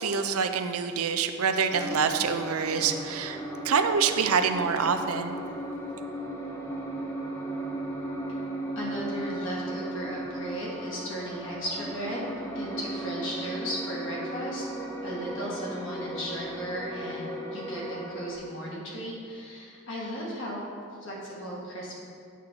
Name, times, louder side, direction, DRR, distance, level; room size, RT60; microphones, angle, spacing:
voice 1, 0.0-5.4, right 6 dB, 85° right, 8 dB, 0.5 m, -26 dB
sound 1, 1.7-18.4, right 1 dB, 15° left, 0.7 m, -36 dB
voice 2, 8.8-14.6 15.0-20.6 21.0-22.0, equal, 60° left, -5 dB, 1.8 m, -36 dB
8.1 x 3.6 x 6.2 m, 2.3 s
head